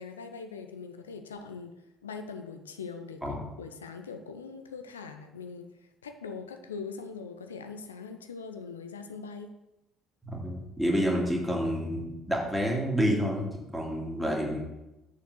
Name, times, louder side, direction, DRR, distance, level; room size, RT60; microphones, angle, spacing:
voice 1, 0.0-1.7 2.0-5.7 6.0-9.5, left 5 dB, 75° left, 7 dB, 0.5 m, -41 dB
voice 2, 10.3-14.6, equal, ahead, -2 dB, 2.2 m, -29 dB
6.7 x 5.2 x 6.3 m, 0.96 s
figure-of-eight pair, 50°, 0 cm